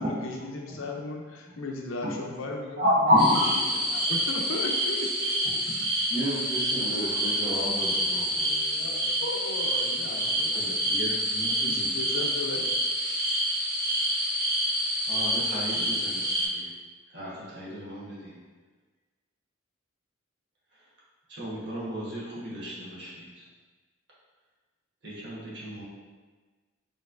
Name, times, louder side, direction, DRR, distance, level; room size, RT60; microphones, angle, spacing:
voice 1, 0.0-5.8 8.8-11.0 11.6-12.7, left 2 dB, 80° left, 0 dB, 0.6 m, -36 dB
voice 2, 2.8-3.2 6.2-6.4 6.8-7.6 10.2-11.9 15.1-16.7 17.1-18.4 21.3-23.4 25.0-25.8, equal, 55° right, -7 dB, 1.2 m, -31 dB
sound 1, 3.2-16.5, equal, 80° right, 1.3 m, -27 dB
voice 3, 6.1-9.1, right 1 dB, 25° right, -10 dB, 1.4 m, -34 dB
4.5 x 3.2 x 2.5 m, 1.4 s
head